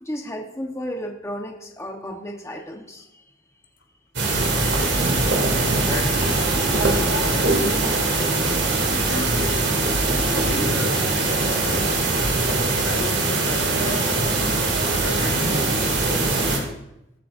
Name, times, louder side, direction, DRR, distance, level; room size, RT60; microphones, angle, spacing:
voice 1, 0.0-3.2, equal, 15° left, 1.1 m, -33 dB
sound 1, 4.2-16.6, right 2 dB, 65° right, 2.7 m, -21 dB
voice 2, 5.6-12.4 12.8-16.7, left 2 dB, 75° left, 2.4 m, -35 dB
19.5 x 8.7 x 2.6 m
head